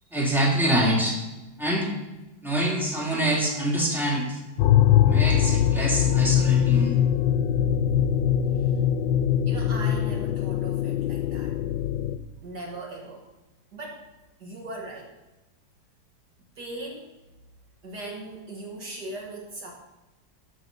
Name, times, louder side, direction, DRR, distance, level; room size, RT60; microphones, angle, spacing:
voice 1, 0.1-1.2 1.6-1.9 2.4-4.4 5.0-7.0, right 1 dB, ahead, -4 dB, 2.9 m, -25 dB
sound 1, 4.6-12.2, left 10 dB, 80° left, 1.3 m, -22 dB
voice 2, 9.4-11.6 12.4-13.3 13.7-14.0 14.4-15.1 16.6-17.1 17.8-19.7, right 2 dB, 60° right, 0 dB, 2.1 m, -39 dB
13.5 x 6.5 x 5.4 m, 1.1 s
omnidirectional pair, 2.0 m